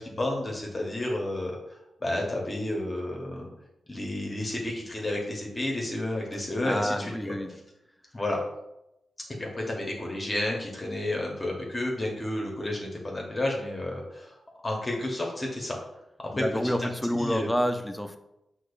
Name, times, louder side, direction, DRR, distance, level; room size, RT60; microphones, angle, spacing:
voice 1, 0.0-1.6 2.0-3.5 3.9-7.3 8.1-8.4 9.4-14.4 14.6-15.8 16.2-16.9 17.1-17.5, left 1 dB, 30° left, -1 dB, 0.7 m, -31 dB
voice 2, 6.6-7.5 16.3-18.2, equal, 5° left, 7 dB, 0.3 m, -28 dB
4.7 x 2.0 x 2.4 m, 0.87 s
cardioid pair, 60°, 0 cm